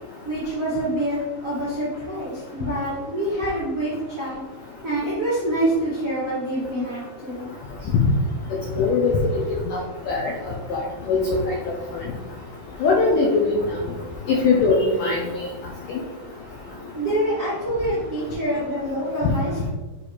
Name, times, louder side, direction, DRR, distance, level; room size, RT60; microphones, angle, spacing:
voice 1, 0.2-4.4 4.8-7.5 9.6-9.7 16.9-19.7, right 1 dB, 75° right, -10 dB, 0.7 m, -26 dB
voice 2, 8.8-9.2 9.7-10.3 10.7-11.6 12.8-13.3 14.3-15.4, left 4 dB, 85° left, -2 dB, 1.9 m, -21 dB
7.2 x 3.4 x 4.1 m, 1.2 s
omnidirectional pair, 4.7 m